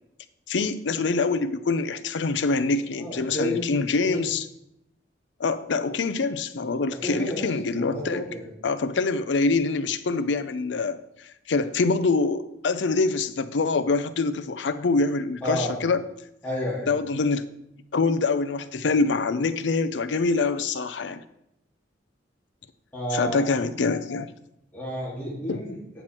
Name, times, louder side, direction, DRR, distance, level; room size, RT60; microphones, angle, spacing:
voice 1, 0.5-4.5 5.4-8.2 8.6-11.0 11.5-16.0 16.9-17.5 17.9-21.2 23.1-24.3 25.5-25.6, left 3 dB, 75° left, 13 dB, 0.5 m, -25 dB
voice 2, 3.0-3.6 3.9-4.2 6.9-8.5 15.4-15.8 16.4-16.9 22.9-23.5 24.7-25.8, equal, 10° left, -7 dB, 2.4 m, -30 dB
9.2 x 6.0 x 4.4 m, 0.80 s
head